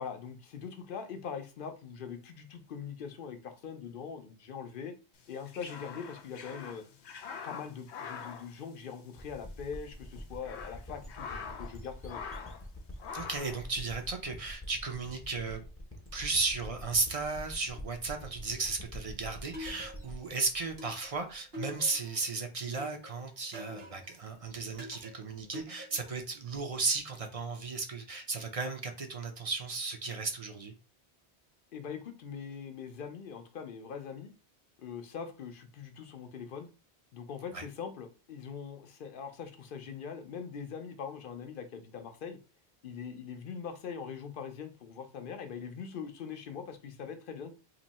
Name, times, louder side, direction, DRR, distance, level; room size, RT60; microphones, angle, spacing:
voice 1, 0.0-4.9 5.3-6.8 7.3-12.2 31.7-34.3 34.8-36.7 37.1-42.4 42.8-47.5, left 6 dB, 60° left, 7 dB, 0.8 m, -42 dB
sound 1, 5.2-9.3 9.6-9.7 10.2-11.8 12.0-12.7 13.0-13.6, left 6 dB, 90° left, 0.9 m, -44 dB
sound 2, 9.1-21.8, equal, 15° left, 0.6 m, -46 dB
voice 2, 13.1-15.6 16.1-30.7 37.5-37.6, right 4 dB, 40° right, 5 dB, 0.6 m, -35 dB
sound 3, 19.5-20.3 20.8-22.2 22.8-24.2 24.8-26.2, left 1 dB, 65° right, 1.3 m, -45 dB
2.9 x 2.7 x 4.1 m, 0.32 s
omnidirectional pair, 1.1 m